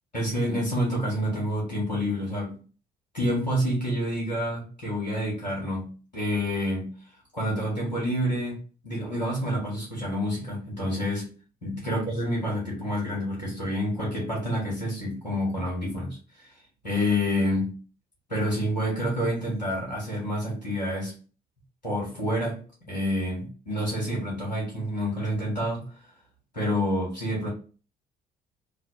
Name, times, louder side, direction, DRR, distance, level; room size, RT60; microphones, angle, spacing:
voice 1, 0.1-2.6 3.1-6.9 7.3-8.6 8.8-11.3 11.6-16.5 16.8-17.7 18.3-21.1 21.8-22.6 22.9-25.9 26.5-27.5, equal, 90° left, -4 dB, 1.3 m, -28 dB
2.6 x 2.6 x 2.9 m, 0.36 s
figure-of-eight pair, 50°, 21 cm